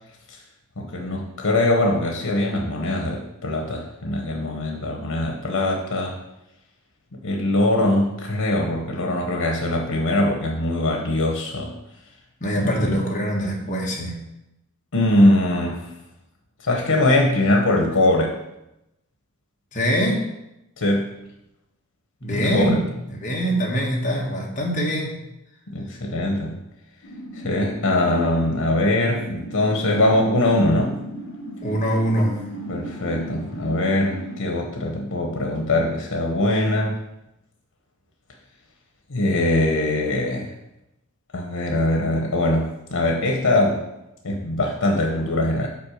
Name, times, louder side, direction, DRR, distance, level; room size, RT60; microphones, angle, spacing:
voice 1, 0.8-6.2 7.2-11.7 12.5-13.0 14.9-15.9 16.6-18.3 20.8-21.1 22.3-22.8 25.7-26.5 27.3-31.0 32.7-36.9 39.1-40.5 41.3-43.8 44.2-45.7, left 1 dB, 85° left, 1 dB, 1.0 m, -22 dB
voice 2, 12.4-14.2 19.7-20.3 22.2-25.2 31.6-32.4, equal, 35° left, -1 dB, 1.4 m, -23 dB
sound 1, 27.0-34.4, right 1 dB, 60° left, 1.3 m, -36 dB
6.0 x 4.2 x 6.4 m, 0.88 s
head